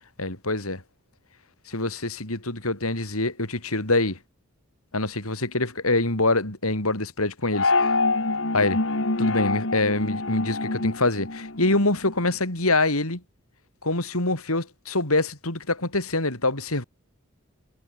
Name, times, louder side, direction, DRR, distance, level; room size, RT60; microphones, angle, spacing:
voice 1, 0.2-0.8 1.7-4.2 4.9-7.9 8.5-8.8 9.2-13.2 13.8-16.8, left 2 dB, 85° left, 5.7 m, -25 dB
sound 1, 7.5-12.1, left 3 dB, 60° left, 1.9 m, -26 dB
head